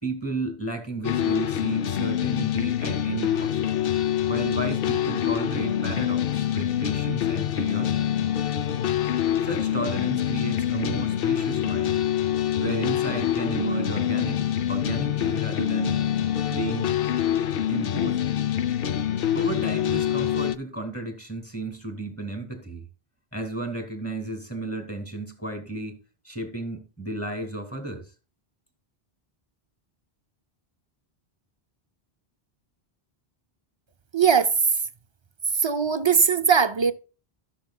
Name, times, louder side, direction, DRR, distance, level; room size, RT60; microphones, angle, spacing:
voice 1, 0.0-3.6 4.3-8.1 9.4-12.0 12.6-16.0 16.5-17.2 17.7-18.2 19.3-22.8 23.3-28.1, right 2 dB, 15° left, 2.3 m, -33 dB
sound 1, 1.0-20.6, left 10 dB, 65° left, 0.8 m, -25 dB
voice 2, 34.1-34.5 35.5-36.9, right 6 dB, 35° right, 0.5 m, -20 dB
14.0 x 6.7 x 2.3 m
omnidirectional pair, 1.0 m